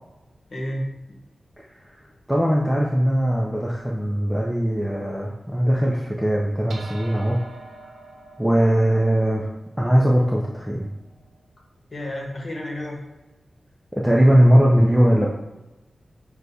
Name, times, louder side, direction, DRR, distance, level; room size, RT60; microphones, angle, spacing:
voice 1, 0.5-1.2 11.9-13.0, left 1 dB, 45° left, -1 dB, 1.2 m, -31 dB
voice 2, 2.3-7.4 8.4-9.5 9.8-10.9 14.0-15.3, equal, 5° right, -3 dB, 0.5 m, -19 dB
sound 1, 6.7-11.4, right 2 dB, 90° right, 0.6 m, -44 dB
6.3 x 2.2 x 2.7 m, 1.1 s
wide cardioid pair, 100°, 0 cm